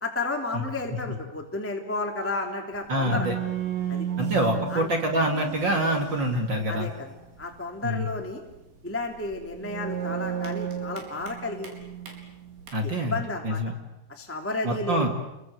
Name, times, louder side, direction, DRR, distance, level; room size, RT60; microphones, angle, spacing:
voice 1, 0.0-3.3 3.9-4.1 4.7-5.0 6.7-8.4 8.8-11.7 12.8-13.6 14.1-15.1, left 2 dB, 5° left, 1 dB, 1.3 m, -32 dB
sound 1, 2.7-12.7, right 9 dB, 60° right, 6.5 m, -35 dB
voice 2, 2.9-3.3 4.2-6.9 7.8-8.1 12.7-13.7 14.6-15.1, right 1 dB, 35° right, 4 dB, 1.9 m, -26 dB
29.5 x 23.0 x 8.0 m, 0.95 s
omnidirectional pair, 5.7 m